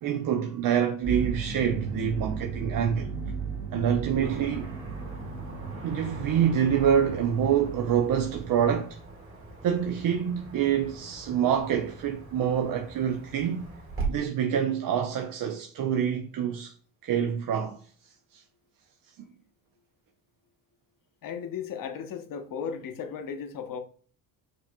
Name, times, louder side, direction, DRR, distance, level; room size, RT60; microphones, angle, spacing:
voice 1, 0.0-3.1 3.7-4.7 5.8-9.0 9.6-13.7 14.1-16.7 17.0-17.8 18.3-18.4, right 8 dB, 50° right, 0.6 m, -26 dB
sound 1, 1.0-8.8, right 5 dB, 75° right, 1.0 m, -36 dB
Car passing by / Traffic noise roadway noise, 4.2-14.1, right 4 dB, 30° right, 1.9 m, -42 dB
voice 2, 21.2-23.8, left 7 dB, 50° left, 0.8 m, -35 dB
4.9 x 3.0 x 2.2 m
supercardioid pair, 70°, 43 cm